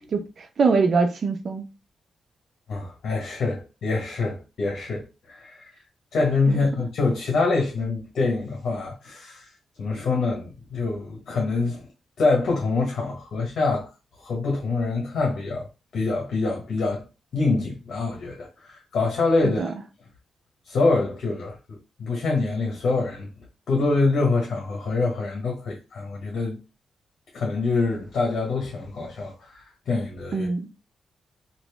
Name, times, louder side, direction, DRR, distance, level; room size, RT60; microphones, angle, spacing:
voice 1, 0.1-1.7 6.5-6.9 19.4-19.7 30.3-30.6, right 4 dB, 55° right, 0.7 m, -23 dB
voice 2, 2.7-5.7 6.1-9.5 9.8-11.9 12.2-13.9 14.2-15.7 15.9-17.0 17.3-19.6 20.7-23.3 23.7-26.6 27.3-30.5, left 3 dB, 70° left, 1.0 m, -25 dB
3.0 x 2.5 x 3.3 m
cardioid pair, 80°, 0 cm